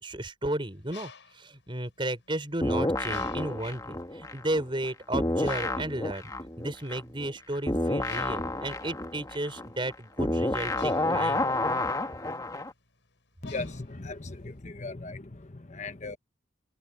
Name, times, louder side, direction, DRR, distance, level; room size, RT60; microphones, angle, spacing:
voice 1, 0.0-6.3 6.6-11.5, right 1 dB, 25° right, 5.5 m, -34 dB
Bird, 0.7-2.5 3.1-3.8 4.4-4.6 4.8-14.6, left 5 dB, 80° left, 5.3 m, -51 dB
sound 1, 2.6-4.9 5.1-12.7, left 2 dB, 20° left, 1.6 m, -30 dB
voice 2, 13.4-15.2 15.7-16.2, left 3 dB, 40° left, 1.2 m, -37 dB
head